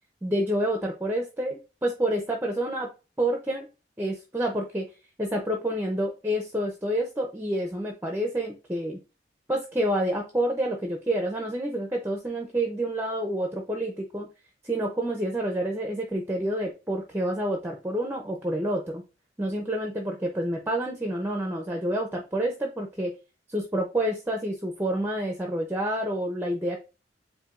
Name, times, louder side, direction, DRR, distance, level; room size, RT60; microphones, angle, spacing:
voice 1, 0.2-2.9 3.2-3.7 4.0-4.9 5.2-9.0 9.5-14.3 14.6-19.0 19.4-23.1 23.5-26.8, right 1 dB, 10° right, 1 dB, 0.6 m, -28 dB
7.5 x 2.7 x 2.5 m, 0.30 s
head